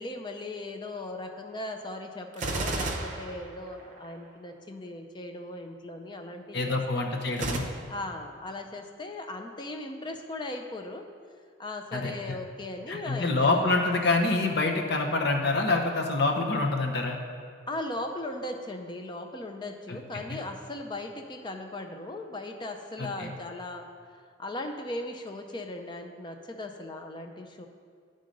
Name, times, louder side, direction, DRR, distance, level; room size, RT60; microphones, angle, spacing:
voice 1, 0.0-7.0 7.9-11.1 11.6-13.6 17.7-23.9 24.4-27.7, left 2 dB, 25° left, 4 dB, 0.5 m, -38 dB
Gunshot gunfire, 2.3-4.1 7.3-7.6, right 2 dB, 40° right, 0.7 m, -32 dB
voice 2, 6.5-7.6 11.9-12.4 12.9-17.2 19.9-20.0 23.0-23.3, left 2 dB, 60° left, 2 dB, 0.8 m, -26 dB
10.5 x 3.8 x 5.2 m, 2.1 s
head